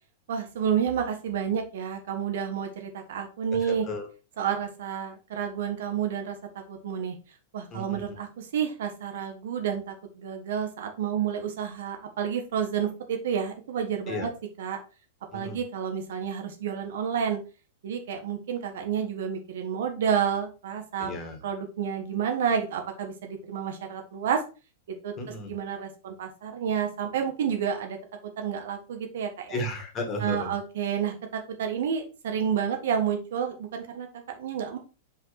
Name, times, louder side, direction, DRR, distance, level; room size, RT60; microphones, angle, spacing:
voice 1, 0.3-3.8 4.4-6.4 6.7-7.1 7.5-14.3 14.6-14.8 15.3-17.4 17.8-21.1 21.4-24.4 25.0-25.1 25.5-28.0 28.4-29.6 30.2-34.8, right 8 dB, 70° right, 5 dB, 1.5 m, -30 dB
voice 2, 3.5-4.1 7.7-8.2 14.1-14.3 15.3-15.6 21.0-21.4 25.2-25.5 29.5-30.5, left 1 dB, 30° left, 4 dB, 2.0 m, -34 dB
5.3 x 5.1 x 4.2 m, 0.32 s
hypercardioid pair, 110°, 0 cm